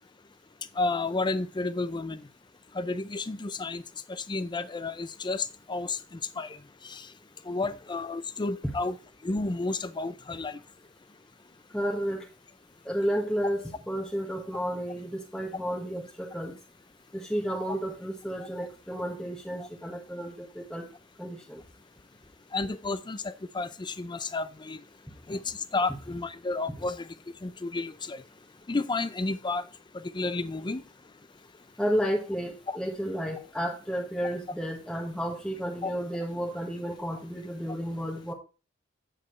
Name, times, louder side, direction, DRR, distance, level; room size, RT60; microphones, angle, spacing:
voice 1, 0.8-2.2 2.7-3.8 4.1-6.0 6.4-6.6 6.8-7.1 7.5-9.0 9.2-10.6 22.5-24.8 25.3-27.1 27.4-28.2 28.7-29.6 30.1-30.8 32.7-32.8 35.8-35.9, left 3 dB, 25° left, 0.5 m, -31 dB
voice 2, 11.7-12.3 12.8-16.5 17.1-20.9 21.2-21.6 31.8-38.3, equal, 5° left, 1.4 m, -32 dB
8.5 x 7.5 x 3.1 m
head